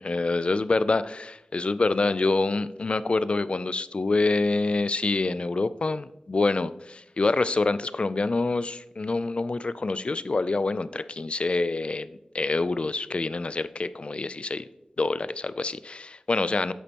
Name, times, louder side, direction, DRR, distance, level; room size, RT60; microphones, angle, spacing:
voice 1, 0.0-14.7 15.0-16.7, left 3 dB, 50° left, 15 dB, 0.3 m, -26 dB
8.1 x 6.2 x 2.9 m, 0.84 s
wide cardioid pair, 60°, 2 cm